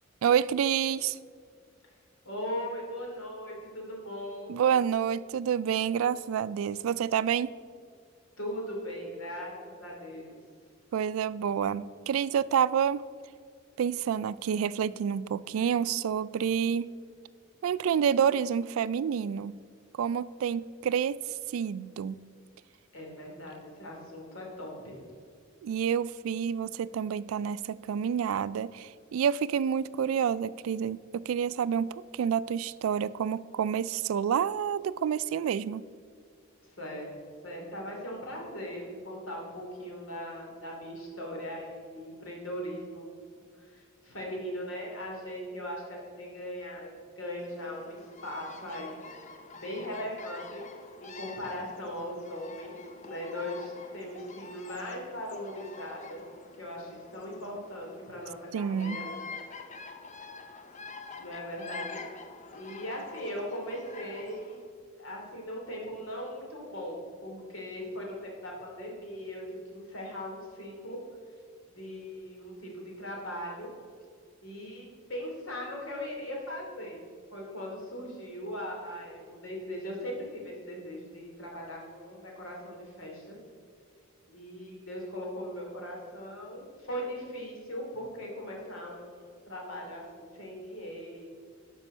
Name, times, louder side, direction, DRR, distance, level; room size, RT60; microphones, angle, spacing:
voice 1, 0.2-1.2 4.5-7.5 10.9-13.0 13.8-16.9 17.6-19.6 20.0-21.2 21.5-22.2 25.6-35.8 58.5-59.0, right 8 dB, 85° right, 18 dB, 0.3 m, -28 dB
voice 2, 2.2-4.6 8.4-10.4 22.9-25.0 36.6-43.1 43.5-49.0 49.6-50.7 51.0-52.8 53.0-56.2 56.6-59.1 61.2-62.0 62.5-64.6 65.0-69.4 69.7-71.0 71.7-73.7 74.4-77.0 77.3-83.4 84.3-91.2, equal, 75° left, -1 dB, 2.8 m, -39 dB
Bird vocalization bird call bird song, 47.4-64.6, left 4 dB, 35° left, 0.7 m, -46 dB
13.0 x 5.4 x 5.4 m, 2.1 s
head